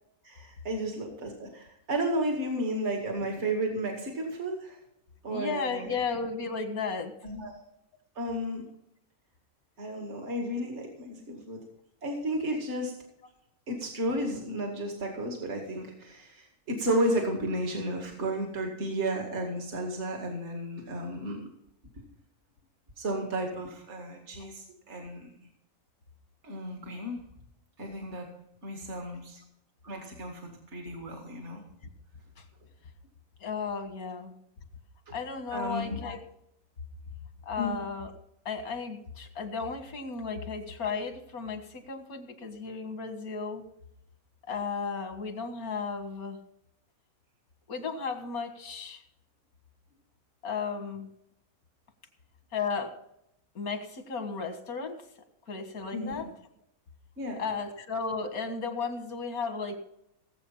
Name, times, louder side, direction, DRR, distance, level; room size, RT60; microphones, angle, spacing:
voice 1, 0.2-4.8 5.2-6.0 7.2-7.5 8.2-8.6 9.8-11.6 12.0-12.9 13.7-21.4 23.0-25.3 26.4-27.2 27.8-28.3 28.6-29.4 29.8-31.6 35.1-35.2 35.5-36.0 37.6-37.8 55.9-56.2 57.2-57.4, right 1 dB, 50° right, 2 dB, 2.4 m, -33 dB
voice 2, 5.3-7.1 33.4-34.3 35.1-36.2 37.5-38.1 38.5-43.6 44.5-46.4 47.7-49.0 50.4-51.1 52.5-52.9 53.6-55.0 55.5-56.3 57.4-59.8, left 5 dB, 90° left, 6 dB, 2.2 m, -34 dB
18.0 x 8.0 x 5.6 m, 0.77 s
omnidirectional pair, 1.5 m